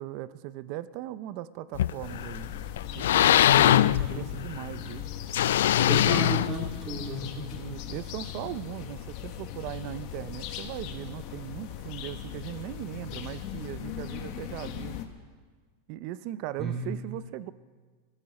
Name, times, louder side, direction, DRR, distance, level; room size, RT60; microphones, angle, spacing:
voice 1, 0.0-2.5 2.9-3.8 4.1-5.1 5.9-6.3 7.6-15.0 15.9-17.5, right 14 dB, 40° right, 15 dB, 0.5 m, -39 dB
sound 1, 1.7-2.4 2.8-4.6 5.3-7.1, left 12 dB, 85° left, 0.4 m, -22 dB
sound 2, 2.0-15.1, left 10 dB, 40° left, 1.3 m, -39 dB
voice 2, 3.5-4.2 5.8-7.6 16.6-17.0, right 2 dB, 20° right, 1 dB, 2.2 m, -34 dB
23.5 x 14.0 x 4.2 m, 1.5 s
supercardioid pair, 170°, 0 cm